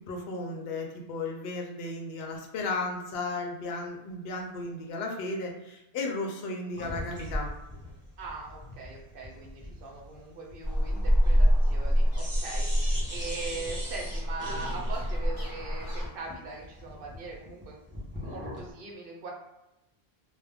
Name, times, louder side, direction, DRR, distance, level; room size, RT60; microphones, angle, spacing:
voice 1, 0.1-7.5, left 2 dB, 75° left, 1 dB, 0.8 m, -34 dB
sound 1, 6.7-11.9 12.1-18.7, equal, 15° right, 0.6 m, -41 dB
voice 2, 8.2-15.8 16.1-19.3, right 3 dB, 65° right, -1 dB, 0.8 m, -41 dB
sound 2, 10.6-16.1, equal, 25° left, 0.7 m, -26 dB
2.2 x 2.1 x 3.3 m, 0.93 s
omnidirectional pair, 1.1 m